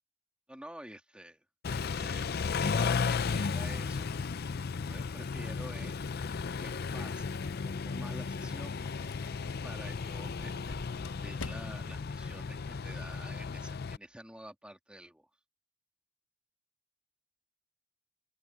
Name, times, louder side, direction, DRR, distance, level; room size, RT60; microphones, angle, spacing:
voice 1, 0.5-4.1 4.9-6.0 6.6-8.8 9.6-15.3, right 1 dB, 5° right, 2.4 m, -49 dB
Car / Idling / Accelerating revving vroom, 1.6-14.0, left 5 dB, 50° left, 0.5 m, -34 dB
sound 1, 6.9-12.1, left 4 dB, 80° left, 0.9 m, -51 dB
sound 2, 8.4-13.8 14.0-14.2, left 1 dB, 20° left, 1.4 m, -56 dB
open air
head